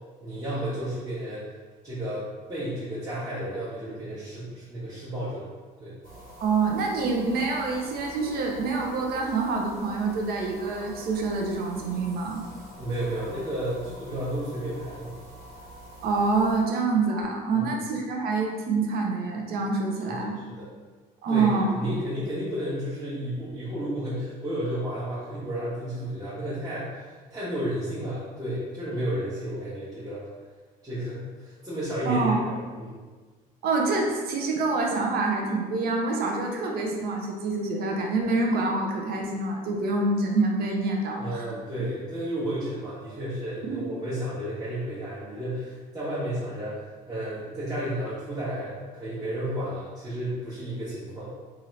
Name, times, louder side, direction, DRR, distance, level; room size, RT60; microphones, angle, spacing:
voice 1, 0.2-1.5 1.8-5.5 5.8-6.0 12.8-15.1 17.5-17.8 20.1-20.7 21.3-30.3 30.8-33.0 41.2-51.3, right 1 dB, 20° right, -11 dB, 0.9 m, -32 dB
sound 1, 6.0-16.6, right 1 dB, 85° right, 1.4 m, -45 dB
voice 2, 6.4-12.4 16.0-20.3 21.2-21.7 32.1-32.4 33.6-41.5 43.7-43.8, right 3 dB, 65° right, 1 dB, 0.6 m, -26 dB
2.7 x 2.5 x 3.1 m, 1.4 s
cardioid pair, 110°, 17 cm